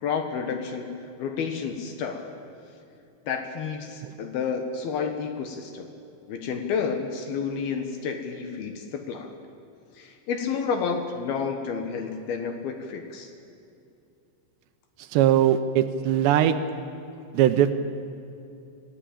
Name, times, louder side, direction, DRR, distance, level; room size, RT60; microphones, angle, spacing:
voice 1, 0.0-0.9 1.2-2.3 3.3-5.9 6.3-9.3 9.9-13.3, left 6 dB, 65° left, 5 dB, 2.8 m, -30 dB
voice 2, 15.1-16.5 17.3-17.8, right 11 dB, 80° right, 9 dB, 2.8 m, -20 dB
25.5 x 16.0 x 8.6 m, 2.5 s
omnidirectional pair, 5.3 m